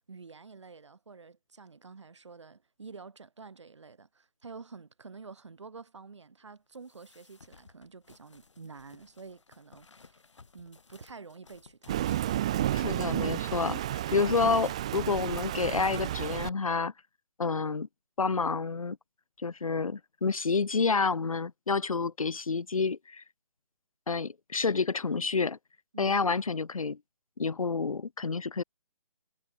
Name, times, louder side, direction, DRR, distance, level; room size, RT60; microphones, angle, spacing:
voice 1, 0.1-10.1 10.5-12.0 25.9-26.2, right 4 dB, 55° right, 5.3 m, -49 dB
sound 1, 6.7-12.4, left 4 dB, 60° left, 5.4 m, -58 dB
Thunder, 11.9-16.5, right 12 dB, 10° right, 0.4 m, -31 dB
voice 2, 12.7-16.9 17.4-17.9 18.2-19.0 19.4-23.2 24.1-25.6 26.0-27.0 27.4-28.6, left 4 dB, 85° left, 0.4 m, -29 dB
figure-of-eight pair, 140°, 17 cm